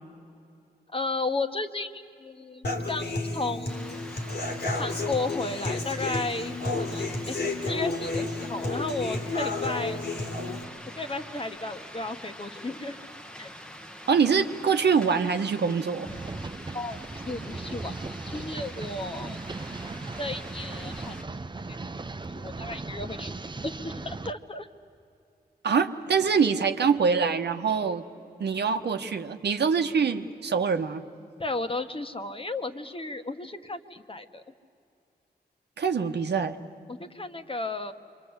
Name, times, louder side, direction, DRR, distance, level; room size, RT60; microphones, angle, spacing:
voice 1, 0.9-4.0 4.8-10.1 10.9-13.0 13.4-13.5 16.7-17.0 17.3-19.4 20.2-21.2 21.7-21.8 22.3-23.3 23.6-24.7 31.4-34.4 36.9-37.9, left 2 dB, 30° left, 7 dB, 1.4 m, -34 dB
Human voice / Acoustic guitar, 2.6-10.6, left 2 dB, 85° left, 3.1 m, -31 dB
sound 1, 3.7-21.2, equal, 5° left, 1.2 m, -45 dB
voice 2, 14.1-16.1 25.6-28.0 28.4-31.0 35.8-36.6, right 6 dB, 85° right, 7 dB, 1.1 m, -24 dB
sound 2, 16.1-24.3, right 3 dB, 25° right, 0.7 m, -37 dB
27.0 x 24.5 x 8.2 m, 2.6 s
cardioid pair, 70°, 17 cm